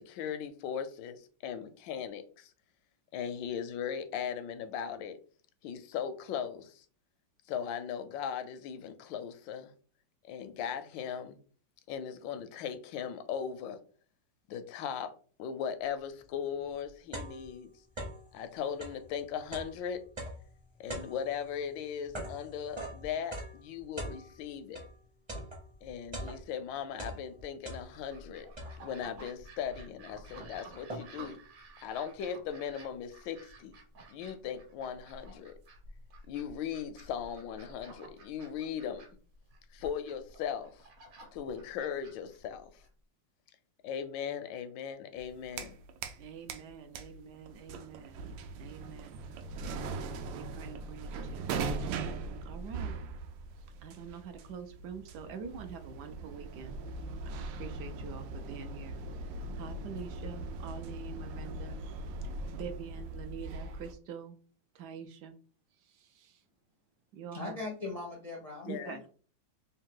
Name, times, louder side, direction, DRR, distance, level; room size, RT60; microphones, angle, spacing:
voice 1, 0.0-2.5 3.1-5.2 5.6-6.8 7.5-9.7 10.2-11.4 11.9-13.8 14.5-15.1 15.4-17.7 18.3-20.0 20.8-24.8 25.8-28.5 28.8-31.4 31.8-33.7 34.1-35.5 36.3-39.0 39.7-40.8 41.3-42.8 43.8-45.8 68.7-69.0, left 8 dB, 85° left, 1.3 m, -38 dB
sound 1, 16.2-16.3 16.7-18.3 18.7-25.0 25.3-26.7 26.9-28.2 28.6-29.1 29.7-29.8 30.1-31.3, right 1 dB, 25° right, 0.6 m, -43 dB
sound 2, 27.7-42.9, right 2 dB, 55° right, 1.3 m, -53 dB
sound 3, 45.2-46.2 46.5-63.9, right 3 dB, 90° right, 1.3 m, -40 dB
voice 2, 46.2-48.3 48.6-49.2 49.9-51.4 52.1-53.0 53.8-56.8 57.2-61.8 62.2-62.3 62.6-64.4 64.7-65.3 65.8-66.4 67.1-67.6 68.6-69.0, right 7 dB, 75° right, 1.1 m, -46 dB
voice 3, 67.3-69.1, left 3 dB, 60° left, 0.4 m, -40 dB
3.6 x 2.7 x 3.7 m
omnidirectional pair, 2.0 m